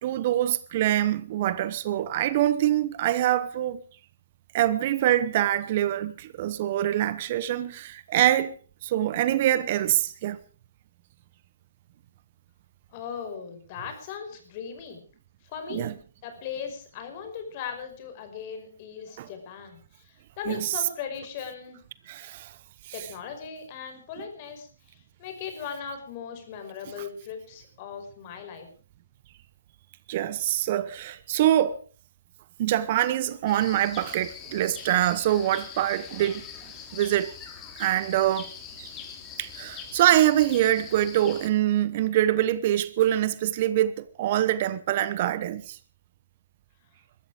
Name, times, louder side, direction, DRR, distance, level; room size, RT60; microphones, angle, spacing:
voice 1, 0.0-3.8 4.5-8.5 8.8-10.4 15.7-15.9 19.2-19.3 20.5-20.8 22.1-22.5 22.9-23.1 30.1-31.8 32.6-36.4 36.9-37.3 37.8-38.5 38.8-38.9 39.4-45.8, right 13 dB, 45° right, 1.1 m, -24 dB
voice 2, 12.9-15.0 15.5-15.8 16.2-19.8 20.1-21.8 22.9-24.7 25.2-28.7, left 7 dB, 40° left, 5.5 m, -38 dB
sound 1, 33.5-41.5, left 7 dB, 20° left, 3.4 m, -43 dB
22.0 x 13.0 x 5.0 m
hypercardioid pair, 135°, 0 cm